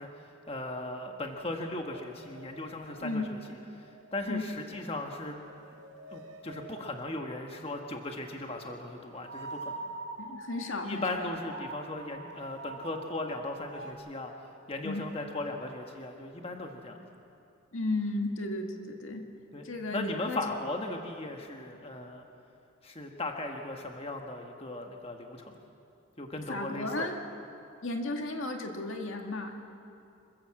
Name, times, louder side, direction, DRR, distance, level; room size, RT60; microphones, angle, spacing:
voice 1, 0.0-3.4 3.7-5.4 6.1-10.0 10.8-14.3 14.7-17.1 19.5-19.7 19.9-22.2 22.8-25.6 26.2-27.1, left 2 dB, 30° left, 3 dB, 1.4 m, -37 dB
sound 1, 1.9-4.8 5.1-7.6 9.1-13.9, right 2 dB, 70° right, 4.2 m, -45 dB
voice 2, 10.2-11.3 14.8-15.1 17.7-19.3 19.6-20.4 26.5-27.2 27.8-29.6, left 2 dB, 80° left, 3 dB, 2.0 m, -34 dB
26.0 x 15.5 x 7.5 m, 2.7 s
head